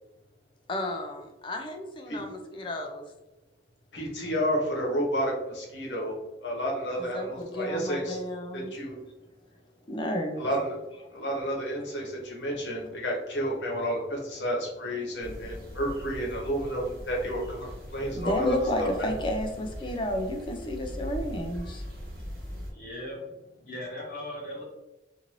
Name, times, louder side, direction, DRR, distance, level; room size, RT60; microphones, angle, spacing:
voice 1, 0.7-3.1 7.0-8.7 9.9-10.5 18.1-21.8, left 1 dB, 25° left, 4 dB, 0.4 m, -32 dB
voice 2, 3.9-8.2 8.5-9.0 10.4-10.8 11.1-19.1, equal, 90° left, -2 dB, 0.9 m, -31 dB
sound 1, 15.2-22.7, equal, 55° right, 1.0 m, -40 dB
voice 3, 22.7-24.6, left 1 dB, 50° left, -3 dB, 1.0 m, -39 dB
2.6 x 2.5 x 3.0 m, 0.97 s
head